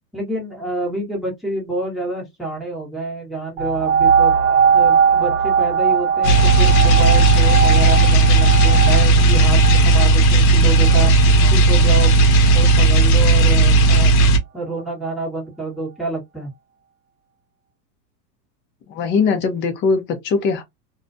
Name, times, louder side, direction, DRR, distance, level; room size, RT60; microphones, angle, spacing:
voice 1, 0.1-4.3 4.7-11.1 11.5-14.1 14.5-16.5, right 2 dB, ahead, 1.0 m, -28 dB
sound 1, 3.6-12.8 13.5-13.6, right 6 dB, 45° right, 0.9 m, -20 dB
sound 2, 6.2-14.4, right 2 dB, 60° left, 0.8 m, -13 dB
voice 2, 18.9-20.6, left 5 dB, 25° left, 0.5 m, -20 dB
2.3 x 2.2 x 2.5 m
hypercardioid pair, 125°, 48 cm